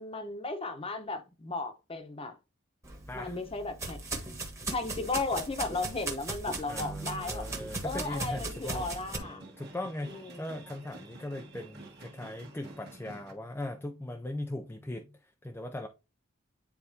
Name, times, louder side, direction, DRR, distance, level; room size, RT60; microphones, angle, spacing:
voice 1, 0.0-2.3 3.1-4.0 4.7-7.5 7.8-9.4 10.0-10.5, left 3 dB, 25° left, 0.9 m, -35 dB
sound 1, 2.8-9.2, right 2 dB, 15° right, 1.2 m, -38 dB
voice 2, 3.1-3.4 4.1-4.3 6.7-15.9, left 1 dB, 10° left, 0.4 m, -39 dB
sound 2, 7.4-13.3, right 2 dB, 50° right, 1.5 m, -50 dB
9.6 x 4.0 x 2.7 m
head